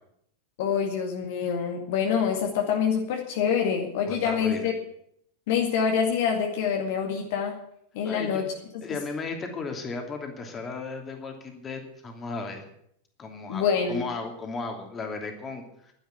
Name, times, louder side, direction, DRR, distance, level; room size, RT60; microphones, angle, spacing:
voice 1, 0.6-4.7 5.5-7.6 7.9-8.5 13.5-14.0, left 7 dB, 50° left, 2 dB, 2.1 m, -26 dB
voice 2, 4.1-4.7 8.0-8.5 8.8-12.6 13.2-13.6 13.9-15.9, left 4 dB, 20° left, 4 dB, 2.9 m, -35 dB
11.5 x 10.5 x 8.8 m, 0.71 s
figure-of-eight pair, 90°, 0 cm